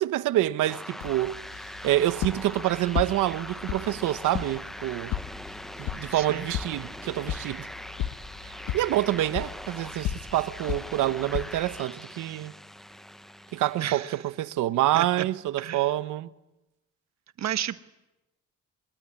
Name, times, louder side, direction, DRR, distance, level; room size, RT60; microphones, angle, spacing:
voice 1, 0.0-1.4 1.8-5.1 5.8-7.7 8.7-12.5 13.5-16.3, right 14 dB, 85° right, 1.0 m, -27 dB
sound 1, 0.6-14.3, equal, ahead, 1.0 m, -42 dB
sound 2, 1.0-11.8, left 11 dB, 85° left, 1.5 m, -36 dB
voice 2, 6.1-6.5 13.8-14.1 14.9-15.3 15.6-15.8 17.4-17.8, right 11 dB, 65° right, 1.2 m, -32 dB
25.5 x 22.5 x 9.7 m
cardioid pair, 90°, 30 cm